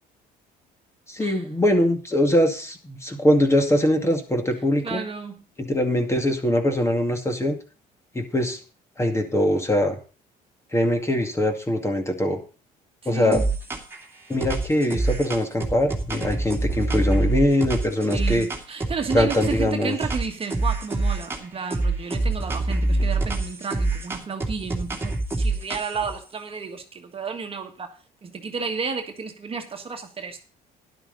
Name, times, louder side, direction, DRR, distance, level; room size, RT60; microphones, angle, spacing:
voice 1, 1.1-5.0 5.6-7.6 8.1-8.6 9.0-10.0 10.7-12.4 13.1-13.4 14.3-18.5 19.1-20.0, left 1 dB, 15° left, 2.2 m, -22 dB
voice 2, 4.8-5.4 13.0-13.5 18.1-28.0 28.2-30.4, right 5 dB, 35° right, 1.7 m, -32 dB
sound 1, 13.3-14.0 14.4-19.7 20.0-21.4 21.7-26.1, right 2 dB, 15° right, 2.4 m, -26 dB
12.0 x 11.0 x 4.1 m
cardioid pair, 110°, 17 cm